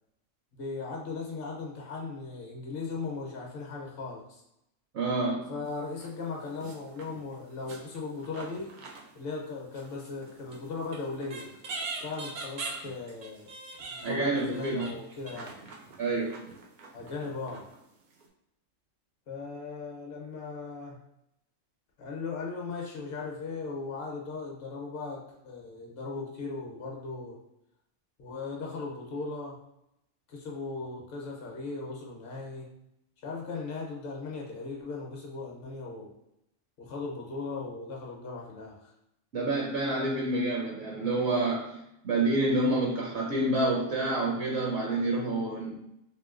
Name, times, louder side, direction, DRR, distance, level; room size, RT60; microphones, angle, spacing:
voice 1, 0.5-4.4 5.5-8.7 9.1-11.5 12.0-13.5 13.8-15.6 16.9-17.6 19.3-21.0 22.0-27.4 28.2-29.6 30.3-32.7 33.2-36.1 36.8-38.9, left 4 dB, 55° left, -1 dB, 0.8 m, -38 dB
voice 2, 4.9-5.4 14.0-14.9 16.0-16.3 39.3-41.8 42.0-45.8, right 2 dB, 65° right, -2 dB, 0.7 m, -28 dB
sound 1, 5.7-6.1 6.4-9.5 9.7-17.8 18.2-18.3, right 3 dB, 90° right, 0.4 m, -43 dB
3.0 x 2.9 x 2.4 m, 0.81 s
omnidirectional pair, 1.4 m